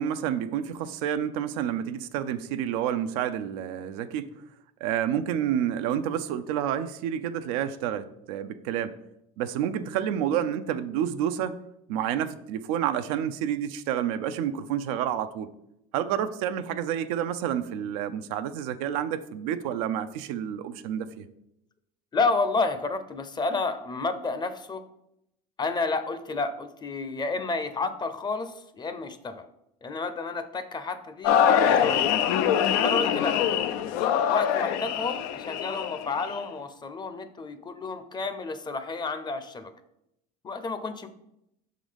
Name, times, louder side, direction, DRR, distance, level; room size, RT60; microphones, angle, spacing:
voice 1, 0.0-4.3 4.8-8.9 9.4-11.6 11.9-15.5 15.9-21.2, right 9 dB, 75° right, 10 dB, 0.5 m, -29 dB
voice 2, 22.1-24.9 25.6-29.5 29.8-32.1 32.8-33.4 34.3-39.7 40.4-41.1, left 3 dB, 25° left, 11 dB, 0.7 m, -30 dB
sound 1, 31.2-36.4, left 9 dB, 75° left, 0.5 m, -24 dB
6.1 x 3.9 x 5.1 m, 0.80 s
supercardioid pair, 95°, 18 cm